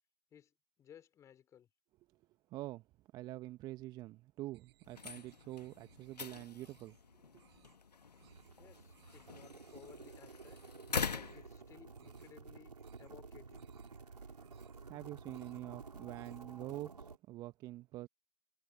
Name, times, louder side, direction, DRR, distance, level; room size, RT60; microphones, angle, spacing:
voice 1, 0.3-1.7 8.3-10.6 11.1-13.6, left 9 dB, 15° left, 5.0 m, -60 dB
voice 2, 2.5-2.9 3.1-7.0 7.3-7.4 14.9-18.1, right 16 dB, 20° right, 1.2 m, -46 dB
sound 1, 4.5-6.2 6.5-7.0 7.3-7.8 8.1-8.5 8.9-9.3 9.6-10.0 10.3-10.8 11.1-11.5 11.8-12.4 12.7-13.2 13.5-14.0 14.3-14.9 15.2-15.7 16.0-16.5, right 16 dB, 40° right, 5.9 m, -69 dB
sound 2, 4.8-12.3, left 5 dB, 70° left, 1.5 m, -44 dB
sound 3, 8.2-17.2, right 4 dB, 75° right, 4.9 m, -53 dB
figure-of-eight pair, 130°, 21 cm